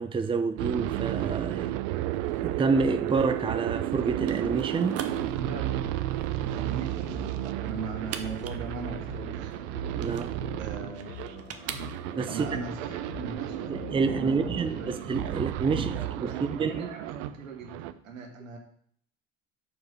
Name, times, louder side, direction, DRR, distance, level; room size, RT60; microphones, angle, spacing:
voice 1, 0.0-1.7 2.4-5.0 9.9-10.3 12.2-12.5 13.7-16.9, right 4 dB, 15° right, 0.6 m, -28 dB
sound 1, 0.6-17.3 17.6-17.9, right 14 dB, 65° right, 0.6 m, -33 dB
sound 2, 2.1-12.3, right 8 dB, 40° right, 0.9 m, -44 dB
sound 3, 4.5-15.4, left 10 dB, 85° left, 0.8 m, -46 dB
voice 2, 5.4-5.8 6.1-9.5 10.6-12.0 12.3-13.7 14.1-14.9 15.7-18.6, right 4 dB, 85° right, 1.4 m, -39 dB
5.0 x 4.7 x 5.6 m
hypercardioid pair, 65°, 39 cm